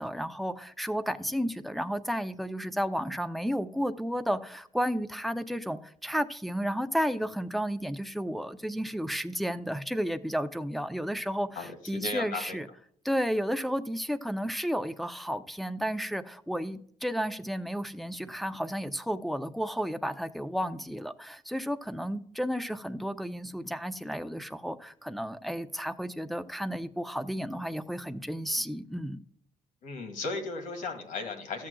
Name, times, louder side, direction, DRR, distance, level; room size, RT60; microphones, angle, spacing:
voice 1, 0.0-12.7 13.0-29.2, equal, ahead, 0.5 m, -32 dB
voice 2, 11.6-12.6 29.8-31.7, left 3 dB, 80° left, 1.9 m, -36 dB
13.5 x 7.4 x 2.3 m
cardioid pair, 110°, 13 cm